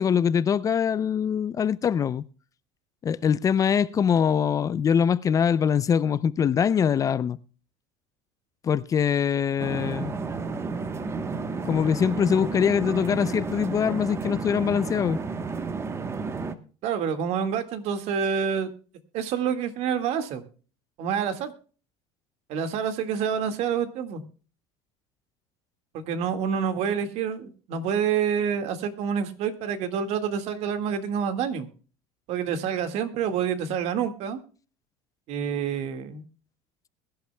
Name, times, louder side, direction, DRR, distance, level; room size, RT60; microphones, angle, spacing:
voice 1, 0.0-2.2 3.0-7.4 8.6-10.1 11.6-15.2, left 7 dB, 25° left, 0.5 m, -23 dB
sound 1, 9.6-16.6, right 4 dB, 20° right, 1.1 m, -32 dB
voice 2, 16.8-18.7 19.1-20.4 21.0-21.5 22.5-24.2 25.9-31.7 32.3-34.4 35.3-36.2, right 7 dB, 60° right, 1.9 m, -27 dB
22.0 x 11.5 x 2.2 m
cardioid pair, 130°, 12 cm